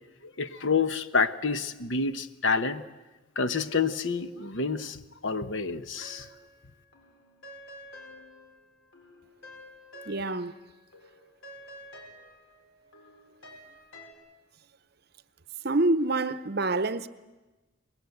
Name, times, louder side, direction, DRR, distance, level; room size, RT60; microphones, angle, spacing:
voice 1, 0.2-2.8 3.4-6.3, left 4 dB, 65° left, 1.1 m, -28 dB
sound 1, 6.0-6.7 6.9-10.7 10.9-14.1, left 1 dB, 85° left, 4.4 m, -50 dB
voice 2, 10.1-10.5 15.6-17.1, right 2 dB, 50° right, 0.8 m, -26 dB
24.0 x 20.5 x 8.0 m
head